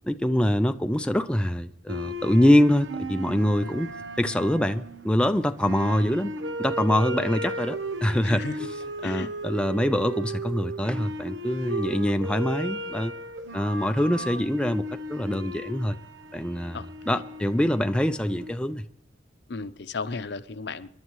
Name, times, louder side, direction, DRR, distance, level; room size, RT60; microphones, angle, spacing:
voice 1, 0.0-3.9 4.2-6.3 6.6-8.4 9.0-13.1 13.5-14.8 15.1-16.0 16.3-16.8 17.1-18.8, left 1 dB, 5° left, 0.5 m, -24 dB
sound 1, 1.9-18.5, right 1 dB, 85° right, 1.0 m, -35 dB
voice 2, 8.2-8.7 9.0-9.3 16.7-17.2 19.5-20.9, left 3 dB, 65° left, 0.7 m, -35 dB
27.5 x 11.5 x 3.1 m
head